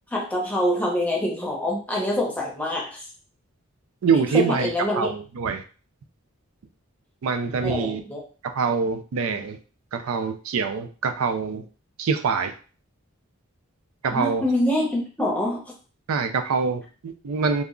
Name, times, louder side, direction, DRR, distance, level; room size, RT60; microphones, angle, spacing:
voice 1, 0.1-3.1 4.3-5.1 7.6-8.2 14.1-15.7, left 1 dB, 5° left, -2 dB, 0.6 m, -25 dB
voice 2, 4.0-5.6 7.2-8.0 8.5-9.6 9.9-11.7 12.0-12.5 14.0-14.4 16.1-17.6, right 5 dB, 80° right, 7 dB, 0.4 m, -25 dB
2.3 x 2.0 x 3.6 m, 0.37 s
head